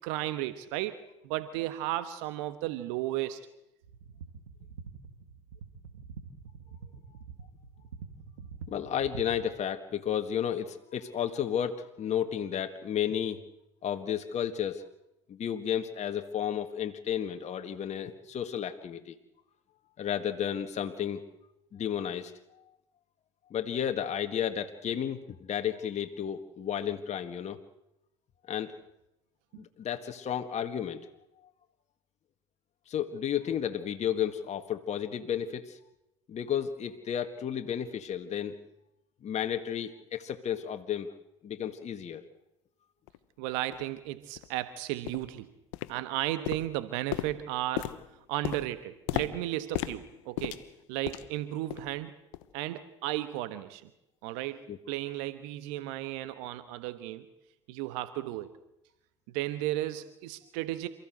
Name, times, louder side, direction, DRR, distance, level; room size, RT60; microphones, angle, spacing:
voice 1, 0.0-3.5 29.5-29.6 43.4-45.5 45.9-47.9 48.3-50.6 50.9-52.1 52.5-53.9 54.2-57.2 57.7-58.5 59.3-60.9, right 15 dB, 70° right, 12 dB, 1.3 m, -34 dB
sound 1, 3.8-9.5, right 5 dB, 90° right, 1.9 m, -46 dB
voice 2, 8.7-13.4 13.8-14.9 15.3-19.2 20.0-21.2 21.7-22.3 23.5-27.6 28.5-28.7 29.6-31.0 32.9-35.8 36.3-38.5 39.2-41.1 41.4-42.2 54.7-54.8, left 9 dB, 45° left, 7 dB, 1.7 m, -32 dB
sound 2, 43.1-43.2 43.7-43.8 44.4-44.5 45.1-45.4 45.7-46.2 46.5-51.4 51.7-52.0 52.3-52.5 53.1-53.2, left 16 dB, 75° left, 1.1 m, -37 dB
28.0 x 15.0 x 8.0 m, 0.88 s
hypercardioid pair, 70°, 17 cm